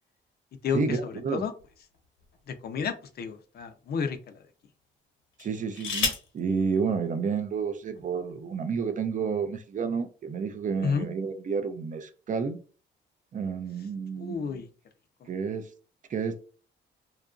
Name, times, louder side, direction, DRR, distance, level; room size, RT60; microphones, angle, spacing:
voice 1, 0.7-1.5 5.4-6.1 6.3-12.6 13.3-14.6 15.3-15.7 16.1-16.4, right 5 dB, 40° right, 0.4 m, -30 dB
sound 1, 1.6-2.8 3.6-3.7 5.3-6.4 7.5-7.6 7.9-8.3, left 5 dB, 90° left, 0.9 m, -33 dB
voice 2, 2.5-4.2 10.8-11.1 14.2-14.7, left 6 dB, 55° left, 0.4 m, -30 dB
2.8 x 2.3 x 2.4 m
cardioid pair, 90°, 20 cm